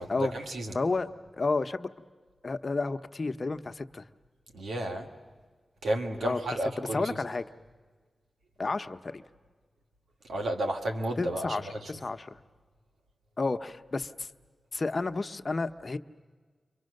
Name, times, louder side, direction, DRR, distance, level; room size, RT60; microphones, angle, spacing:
voice 1, 0.0-0.7 4.5-5.1 5.8-7.2 10.3-11.9, right 1 dB, 90° right, 3 dB, 2.1 m, -32 dB
voice 2, 0.7-1.9 2.4-4.1 6.2-6.4 6.8-7.4 8.6-9.2 11.2-12.4 13.4-14.3 14.7-16.0, left 3 dB, 50° left, 9 dB, 0.9 m, -31 dB
29.5 x 24.5 x 6.6 m, 1.5 s
cardioid pair, 55°, 0 cm